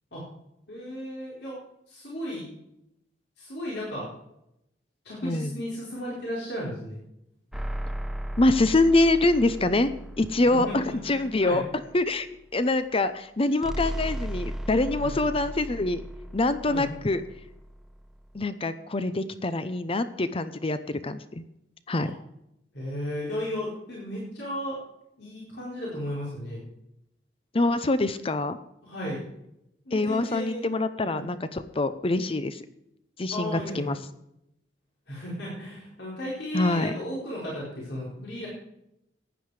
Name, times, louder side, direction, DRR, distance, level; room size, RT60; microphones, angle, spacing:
voice 1, 0.7-1.6 1.9-2.5 3.4-4.1 5.0-7.0 10.4-11.7 15.0-15.2 16.7-16.9 22.0-22.1 22.7-24.8 25.2-26.6 28.8-29.2 29.9-30.7 31.0-31.3 33.3-33.9 35.1-38.5, equal, 65° left, -5 dB, 4.5 m, -35 dB
voice 2, 5.2-5.6 8.4-9.9 10.2-11.6 11.9-12.3 12.5-16.0 16.3-17.2 18.3-21.2 21.9-22.1 27.5-28.6 29.9-32.6 33.2-34.0 36.5-36.9, left 2 dB, 30° left, 12 dB, 0.7 m, -25 dB
sound 1, 7.5-12.0 13.6-18.4, equal, 5° right, 0.8 m, -36 dB
15.0 x 10.0 x 4.9 m, 0.82 s
head